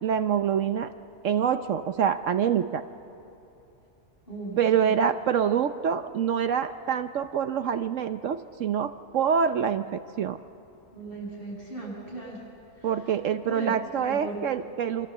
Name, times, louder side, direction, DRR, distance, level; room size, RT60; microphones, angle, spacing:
voice 1, 0.0-0.9 1.2-2.8 4.6-10.4 12.8-15.1, right 8 dB, 65° right, 9 dB, 1.1 m, -26 dB
voice 2, 4.3-4.9 10.9-12.4 12.8-12.9 13.4-13.7 14.0-14.4, right 2 dB, 40° left, -3 dB, 8.2 m, -37 dB
28.5 x 26.0 x 7.5 m, 2.9 s
omnidirectional pair, 1.4 m